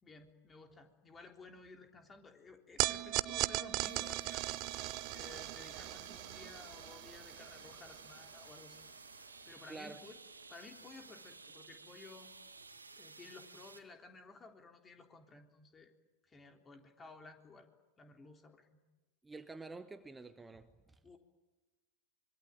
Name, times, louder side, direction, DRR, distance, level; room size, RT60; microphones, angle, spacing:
voice 1, 0.0-4.4 5.1-8.8 9.2-10.2 10.5-12.3 13.0-15.9 16.2-17.7 18.0-18.8 21.0-21.2, left 3 dB, 20° left, 5 dB, 3.5 m, -55 dB
sound 1, 2.8-9.2, right 19 dB, 40° right, 0.8 m, -39 dB
sound 2, 3.8-13.8, right 3 dB, 80° right, 2.2 m, -55 dB
voice 2, 9.7-10.0 19.2-21.0, right 3 dB, 10° right, 11 dB, 1.2 m, -49 dB
25.5 x 24.0 x 9.1 m, 1.2 s
figure-of-eight pair, 90°, 0 cm